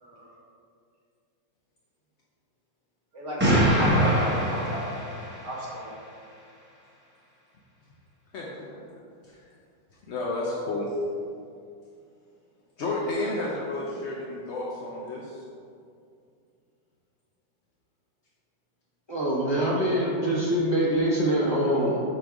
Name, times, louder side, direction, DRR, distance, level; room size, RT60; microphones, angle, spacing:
voice 1, 3.1-4.8 5.4-5.9, equal, 45° right, -5 dB, 1.4 m, -34 dB
Explosion, 3.4-5.6, equal, 10° right, 0.6 m, -23 dB
voice 2, 8.3-8.8 9.2-9.4 10.1-10.9 12.8-15.4, left 2 dB, 70° left, -4 dB, 0.6 m, -31 dB
voice 3, 19.1-22.0, right 1 dB, 20° left, -7 dB, 0.7 m, -24 dB
5.0 x 4.4 x 4.6 m, 2.3 s
omnidirectional pair, 2.0 m